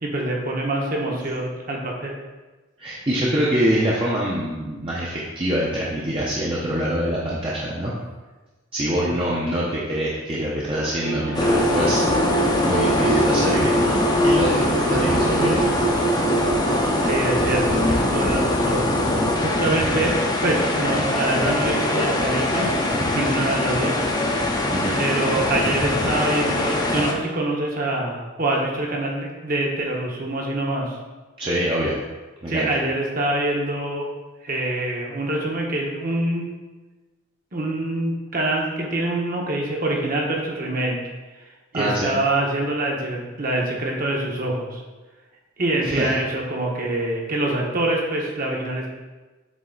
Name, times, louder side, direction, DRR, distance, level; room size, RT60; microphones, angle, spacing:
voice 1, 0.0-2.1 9.0-9.1 17.0-18.9 19.4-22.7 23.1-24.2 24.9-31.0 32.5-34.1 34.4-36.5 37.5-41.0 41.7-44.8 45.6-48.9, right 1 dB, 40° right, -1 dB, 1.0 m, -25 dB
voice 2, 2.8-7.9 8.7-12.0 12.3-13.8 14.2-15.6 24.7-25.0 31.4-32.0 32.4-32.7 41.7-42.1 45.8-46.2, equal, 25° right, -6 dB, 0.7 m, -24 dB
Bowed string instrument, 10.9-18.5, right 5 dB, 80° right, 0.6 m, -27 dB
sound 1, 11.3-27.1, left 2 dB, 20° left, 0.6 m, -22 dB
7.3 x 3.3 x 3.9 m, 1.2 s
head